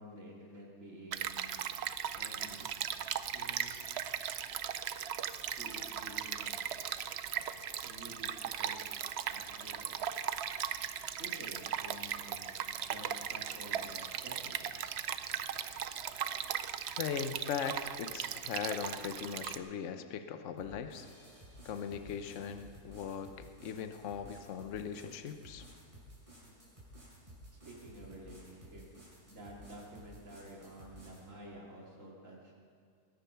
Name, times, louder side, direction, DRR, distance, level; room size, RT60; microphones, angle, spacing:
voice 1, 0.0-1.6 2.1-2.7 3.3-3.8 5.6-6.6 7.8-8.9 9.3-9.8 11.2-14.6 26.4-26.5 27.5-28.9 29.2-32.5, right 1 dB, 50° right, -3 dB, 3.2 m, -51 dB
Stream, 1.1-19.6, right 9 dB, 70° right, 0.6 m, -38 dB
voice 2, 17.0-21.1 21.6-25.7, left 7 dB, 55° left, 8 dB, 1.0 m, -39 dB
sound 1, 20.6-31.3, equal, 20° right, 5.0 m, -55 dB
20.5 x 10.0 x 5.8 m, 2.1 s
omnidirectional pair, 1.7 m